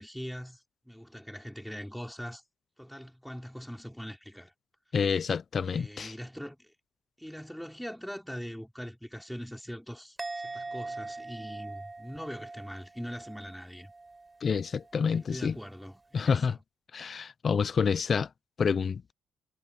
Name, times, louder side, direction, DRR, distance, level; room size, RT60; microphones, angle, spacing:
voice 1, 0.0-2.4 2.8-4.5 5.7-6.7 7.2-10.2 10.4-13.9 15.1-16.6, equal, ahead, 4.5 m, -42 dB
voice 2, 4.9-6.1 14.4-15.6 16.1-16.6 16.9-18.3 18.6-19.1, left 6 dB, 45° left, 0.6 m, -28 dB
Musical instrument, 10.2-13.6 13.8-14.3, right 3 dB, 20° right, 5.9 m, -41 dB
cardioid pair, 90°, 0 cm